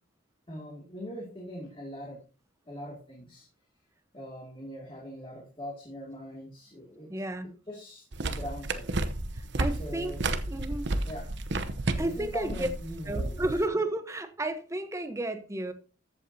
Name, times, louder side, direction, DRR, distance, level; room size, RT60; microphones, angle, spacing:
voice 1, 0.5-2.2 2.7-3.5 4.1-7.1 7.7-8.9 9.8-10.2 11.1-11.3 11.9-13.6, equal, 25° left, -2 dB, 2.3 m, -41 dB
voice 2, 7.1-7.5 9.3-10.1 10.5-10.9 12.0-12.7 13.1-15.7, right 1 dB, 15° right, 9 dB, 0.9 m, -32 dB
sound 1, 8.1-13.6, right 2 dB, 55° right, 0.8 m, -32 dB
14.0 x 8.3 x 2.8 m, 0.35 s
head